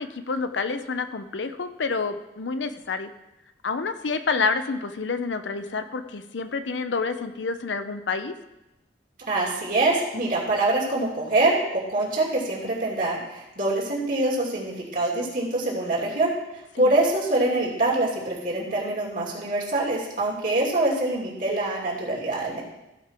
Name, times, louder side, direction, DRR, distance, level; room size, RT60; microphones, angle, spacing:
voice 1, 0.0-3.1 3.6-8.3 16.7-17.0, left 4 dB, 75° left, 9 dB, 0.7 m, -28 dB
voice 2, 9.3-16.3 16.8-22.6, right 2 dB, 50° right, -4 dB, 2.7 m, -24 dB
15.0 x 5.3 x 4.4 m, 0.98 s
head